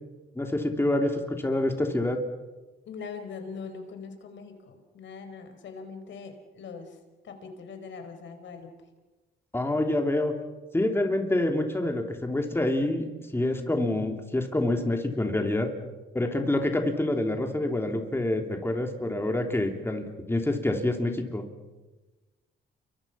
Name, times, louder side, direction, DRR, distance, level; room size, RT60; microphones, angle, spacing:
voice 1, 0.3-2.2 9.5-10.3 10.7-13.1 13.3-15.7 16.1-21.4, left 1 dB, 10° left, 4 dB, 3.2 m, -27 dB
voice 2, 2.9-7.0 7.2-8.7, left 5 dB, 70° left, 7 dB, 4.4 m, -41 dB
29.0 x 24.0 x 5.8 m, 1.2 s
cardioid pair, 90°, 20 cm